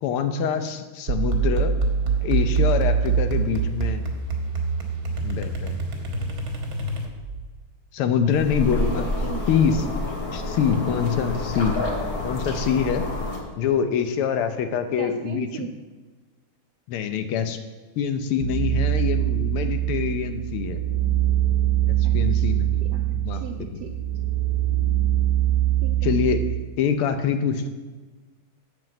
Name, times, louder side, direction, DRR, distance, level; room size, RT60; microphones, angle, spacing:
voice 1, 0.0-1.7 2.2-4.0 5.2-5.8 7.9-9.1 9.5-9.8 10.3-11.7 12.2-13.0 13.6-15.7 16.9-17.6 18.0-20.8 21.9-22.8 23.1-23.4 23.7-23.8 26.0-26.4 26.8-27.7, left 7 dB, 85° left, 8 dB, 1.7 m, -25 dB
sound 1, 1.1-7.4, right 5 dB, 50° right, 1.5 m, -25 dB
Sipping water, 8.3-13.4, left 2 dB, 45° left, 1.9 m, -28 dB
voice 2, 8.6-9.5 10.6-10.8 15.0-15.7 22.0-22.5 22.8-23.9 25.8-26.1, right 7 dB, 80° right, 4 dB, 0.9 m, -36 dB
sound 2, 18.4-26.5, right 13 dB, 30° left, 1.5 m, -23 dB
7.0 x 6.1 x 7.6 m, 1.3 s
omnidirectional pair, 2.4 m